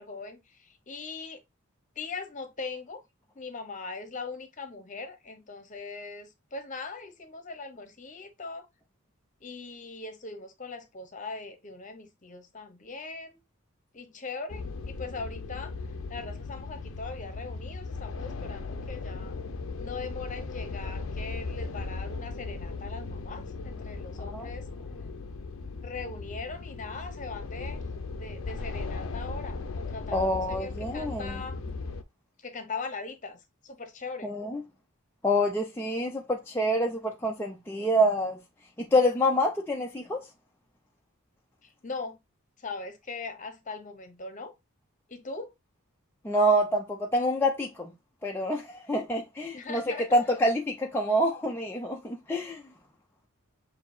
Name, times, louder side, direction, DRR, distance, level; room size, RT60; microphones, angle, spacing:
voice 1, 0.0-1.4 2.0-3.0 3.3-8.7 9.4-13.4 13.9-15.7 16.1-19.3 19.8-24.7 25.8-31.6 32.4-34.3 41.6-42.2 42.6-44.5 45.1-45.5 49.5-50.1, left 4 dB, 35° left, 0.9 m, -40 dB
sound 1, 14.5-32.0, left 3 dB, 65° left, 0.6 m, -37 dB
voice 2, 30.1-31.4 34.2-34.6 35.2-38.4 38.8-40.2 46.2-47.9 48.2-52.6, equal, 10° left, 0.5 m, -27 dB
6.6 x 2.8 x 2.6 m
head